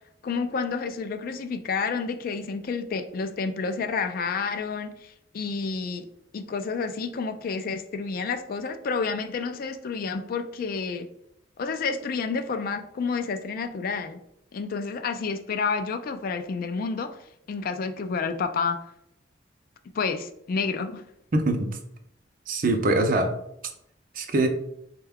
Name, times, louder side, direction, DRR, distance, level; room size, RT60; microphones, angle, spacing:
voice 1, 0.2-6.1 6.3-11.1 11.6-14.2 14.5-17.2 17.5-18.8 19.9-21.0, left 5 dB, 50° left, 9 dB, 0.3 m, -29 dB
voice 2, 21.3-21.8 22.5-23.4 24.1-24.5, right 2 dB, 50° right, 5 dB, 0.5 m, -23 dB
4.3 x 2.2 x 3.5 m, 0.76 s
head